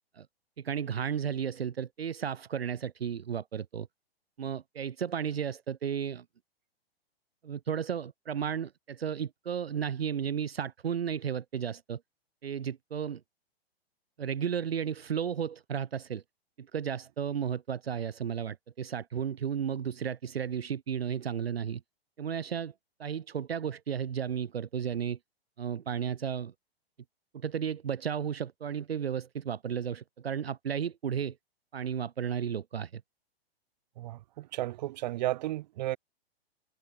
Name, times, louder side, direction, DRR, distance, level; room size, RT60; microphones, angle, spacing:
voice 1, 0.6-3.9 4.4-6.2 7.4-12.0 12.4-13.2 14.2-16.2 16.6-21.8 22.2-22.7 23.0-25.2 25.6-26.5 27.3-31.4 31.7-33.0, right 8 dB, 70° right, 0.8 m, -33 dB
voice 2, 34.0-36.0, right 15 dB, 45° right, 1.2 m, -33 dB
figure-of-eight pair, 110°, 31 cm